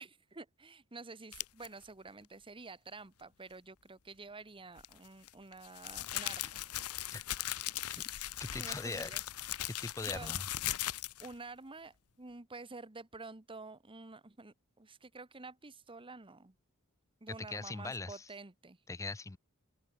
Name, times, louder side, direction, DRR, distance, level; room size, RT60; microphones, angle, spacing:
voice 1, 0.0-6.6 7.9-8.1 8.6-9.2 10.0-10.3 11.2-16.6 17.2-18.8, right 3 dB, 25° right, 1.3 m, -49 dB
sound 1, 1.3-1.7 4.8-11.3, left 13 dB, 75° left, 1.0 m, -39 dB
voice 2, 8.4-9.1 9.6-10.5 17.5-18.3 18.9-19.4, left 3 dB, 15° left, 0.4 m, -41 dB
open air
head